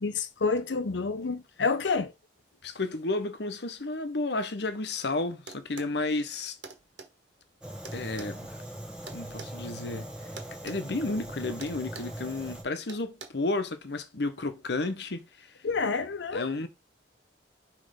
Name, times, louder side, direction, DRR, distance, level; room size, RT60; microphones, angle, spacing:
voice 1, 0.0-2.1 15.6-16.5, left 4 dB, 90° left, 0.7 m, -28 dB
voice 2, 2.6-6.6 7.9-8.5 9.1-10.1 10.6-15.5 16.3-16.7, left 2 dB, 70° left, 1.0 m, -32 dB
sound 1, 5.5-6.0 6.6-7.1 7.8-9.5 10.4-10.8 11.1-11.3 11.6-12.2 12.9-13.3, right 4 dB, 80° right, 1.4 m, -44 dB
Fire, 7.6-12.6, right 1 dB, 5° right, 1.3 m, -41 dB
6.2 x 3.2 x 5.1 m
head